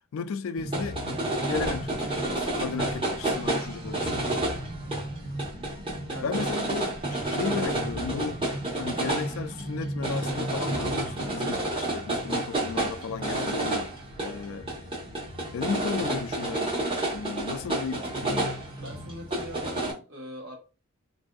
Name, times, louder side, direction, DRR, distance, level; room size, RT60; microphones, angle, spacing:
voice 1, 0.1-1.0 1.5-4.2 6.2-8.4 8.8-13.9 14.2-14.6 15.5-16.7 17.1-18.5, left 5 dB, 70° left, 0.3 m, -34 dB
sound 1, 0.6-19.9, right 1 dB, 25° right, 0.9 m, -30 dB
voice 2, 6.1-6.7 14.2-15.1 18.8-20.6, equal, 60° right, 1.2 m, -42 dB
3.4 x 2.6 x 2.3 m
head